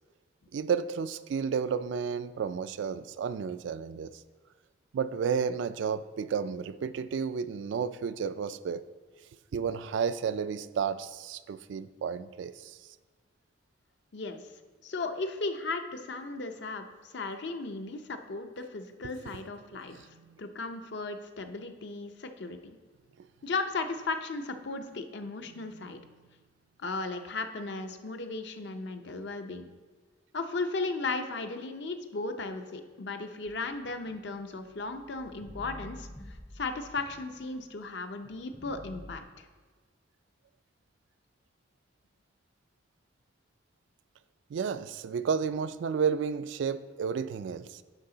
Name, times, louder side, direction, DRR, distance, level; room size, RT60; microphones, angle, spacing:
voice 1, 0.5-4.1 4.9-8.8 9.5-12.8 19.0-19.1 19.9-20.4 23.2-23.3 25.5-25.9 44.5-47.8, right 6 dB, 65° right, 14 dB, 0.3 m, -32 dB
voice 2, 14.8-20.1 20.4-22.7 23.4-26.0 26.8-29.7 30.3-39.5, left 3 dB, 60° left, 7 dB, 0.6 m, -36 dB
sound 1, 33.5-37.8 38.2-39.2, equal, 10° left, 0.4 m, -49 dB
9.8 x 5.6 x 3.9 m, 1.4 s
head